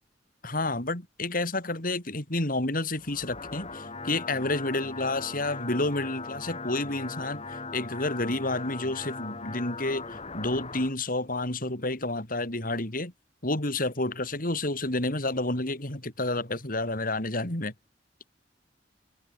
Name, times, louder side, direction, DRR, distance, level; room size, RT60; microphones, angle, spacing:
voice 1, 0.4-13.1 13.4-17.7, left 2 dB, 50° left, 4.7 m, -30 dB
sound 1, 2.9-10.9, left 3 dB, 35° left, 5.1 m, -39 dB
head